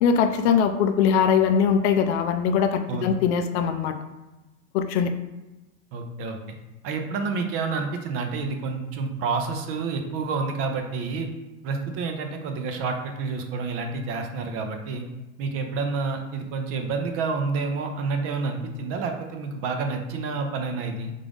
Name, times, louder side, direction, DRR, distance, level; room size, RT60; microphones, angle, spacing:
voice 1, 0.0-3.9 4.7-5.1, left 7 dB, 55° left, 8 dB, 0.5 m, -21 dB
voice 2, 5.9-6.4 6.8-11.3 11.6-15.0 15.4-21.1, right 4 dB, 35° right, 5 dB, 0.5 m, -29 dB
3.7 x 3.7 x 3.5 m, 1.0 s
supercardioid pair, 130°, 40 cm